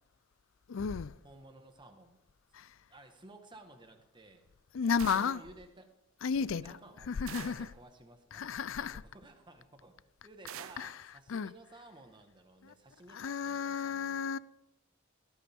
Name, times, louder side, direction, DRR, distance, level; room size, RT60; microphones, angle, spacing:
voice 1, 0.7-1.1 2.5-2.7 4.7-5.4 6.2-6.6 7.1-7.7 8.3-9.0 10.8-10.9 11.3-11.5 12.7-12.8 13.1-14.4, left 6 dB, 60° left, 0.4 m, -33 dB
voice 2, 1.2-2.2 2.9-4.5 4.8-5.9 6.4-10.0 10.2-14.4, right 2 dB, 20° right, 1.4 m, -55 dB
sound 1, 5.0-5.5 7.3-7.8 10.5-11.0, right 9 dB, 65° right, 0.5 m, -45 dB
18.0 x 13.5 x 3.5 m
head